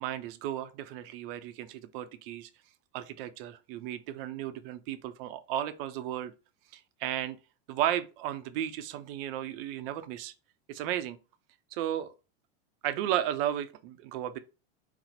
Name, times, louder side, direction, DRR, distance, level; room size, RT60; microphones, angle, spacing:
voice 1, 0.0-2.5 2.9-6.3 6.7-7.4 7.7-10.3 10.7-11.2 11.7-12.1 12.8-14.4, right 11 dB, 60° right, 0.5 m, -34 dB
4.1 x 2.0 x 4.3 m
supercardioid pair, 150°, 32 cm